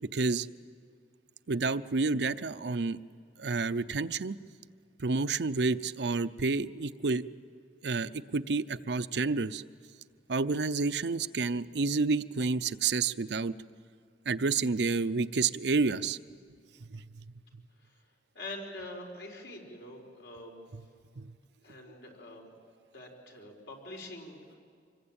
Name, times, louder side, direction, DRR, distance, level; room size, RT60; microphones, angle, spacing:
voice 1, 0.1-0.5 1.5-3.0 3.4-4.4 5.0-7.2 7.8-9.6 10.3-13.5 14.3-16.2 16.9-17.0 21.2-21.3, right 4 dB, 65° right, 13 dB, 0.6 m, -29 dB
voice 2, 18.3-20.6 21.6-22.4 22.9-24.6, left 1 dB, 70° left, 2 dB, 4.5 m, -44 dB
26.0 x 22.0 x 8.8 m, 2.2 s
head